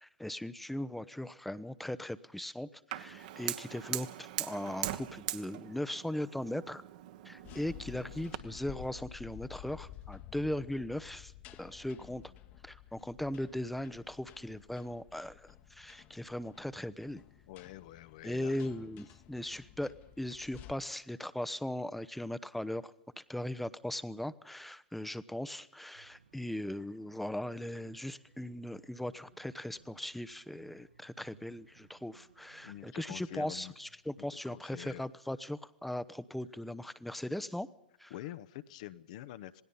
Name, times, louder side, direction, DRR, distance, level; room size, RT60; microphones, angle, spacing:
voice 1, 0.0-6.8 7.2-11.3 11.6-12.2 12.6-17.2 18.2-22.9 23.3-37.7 38.0-38.1, left 1 dB, ahead, 16 dB, 0.8 m, -39 dB
Fire, 2.9-8.4, right 13 dB, 50° right, 1.4 m, -41 dB
sound 1, 7.4-20.7, left 12 dB, 35° left, 1.3 m, -52 dB
voice 2, 17.5-18.6 32.6-33.7 34.2-35.0 38.1-39.6, left 14 dB, 50° left, 13 dB, 0.9 m, -46 dB
sound 2, 25.9-33.9, right 5 dB, 70° right, 5.2 m, -64 dB
27.0 x 19.0 x 5.5 m, 0.80 s
figure-of-eight pair, 105°, 5 cm